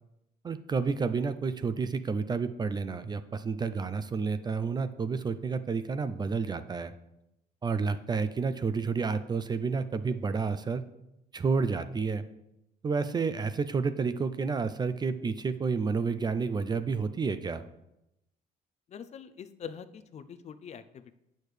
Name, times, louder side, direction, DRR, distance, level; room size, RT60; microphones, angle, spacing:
voice 1, 0.4-6.9 7.6-10.8 11.3-12.3 12.8-17.6, right 5 dB, 25° right, 12 dB, 0.4 m, -30 dB
voice 2, 18.9-21.1, left 7 dB, 40° left, 12 dB, 0.5 m, -44 dB
8.6 x 6.4 x 3.2 m, 0.86 s
cardioid pair, 110°, 17 cm